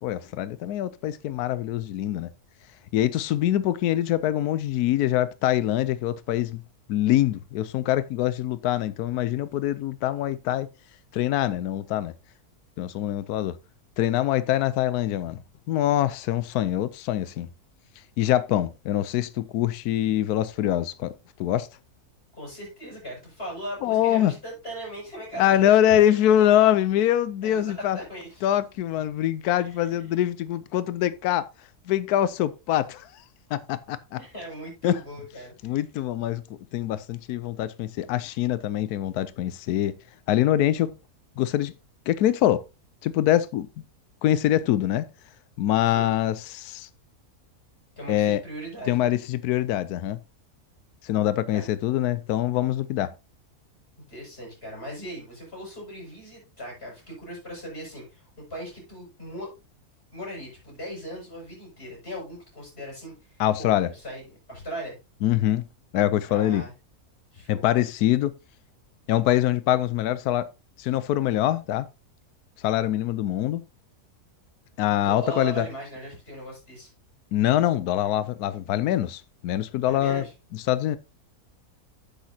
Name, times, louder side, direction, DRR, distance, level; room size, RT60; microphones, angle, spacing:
voice 1, 0.0-2.3 2.9-6.6 6.9-10.7 11.1-12.1 12.8-13.5 14.0-15.4 15.7-17.5 18.2-21.1 21.4-21.7 23.8-24.3 25.4-28.0 28.4-31.5 31.9-33.2 33.5-34.2 34.8-35.0 35.6-36.4 36.7-40.0 40.3-40.9 41.4-41.7 42.1-42.6 43.0-43.7 44.2-45.1 45.6-46.9 48.1-48.4 48.9-50.2 51.0-53.1 63.4-63.9 65.2-65.6 65.9-66.6 67.5-68.3 69.1-70.5 70.8-71.9 72.6-73.6 74.8-75.6 77.3-80.2 80.7-81.0, left 12 dB, 80° left, 1.1 m, -24 dB
voice 2, 22.3-26.2 27.4-28.4 29.5-30.1 34.2-35.8 45.8-46.1 48.0-49.1 51.5-51.7 54.1-59.5 60.1-64.9 66.3-66.7 67.3-67.7 75.0-76.9 79.8-80.3, right 1 dB, 40° left, 6.7 m, -39 dB
10.0 x 8.6 x 2.8 m
omnidirectional pair, 1.6 m